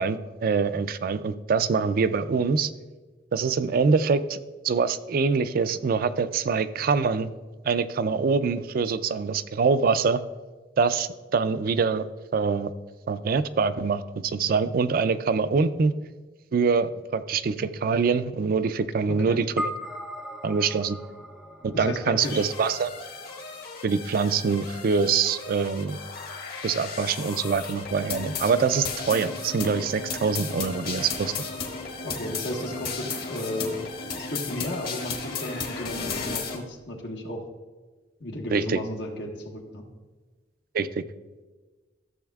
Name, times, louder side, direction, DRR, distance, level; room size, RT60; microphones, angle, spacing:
voice 1, 0.0-2.7 3.3-4.4 4.6-7.3 7.6-10.2 10.8-12.0 12.3-12.7 13.1-15.9 16.5-19.7 20.4-21.0 21.6-22.9 23.8-26.0 26.6-31.4 38.5-38.8 40.7-41.0, right 5 dB, 55° right, 13 dB, 0.4 m, -24 dB
voice 2, 19.1-19.4 21.7-22.5 32.0-33.8 34.2-37.4 38.2-39.8, left 1 dB, 85° left, 1 dB, 1.3 m, -34 dB
sound 1, 19.6-24.1, equal, ahead, 0.6 m, -38 dB
sound 2, 22.2-36.6, left 4 dB, 60° left, 1.4 m, -35 dB
13.5 x 7.0 x 2.3 m, 1.3 s
head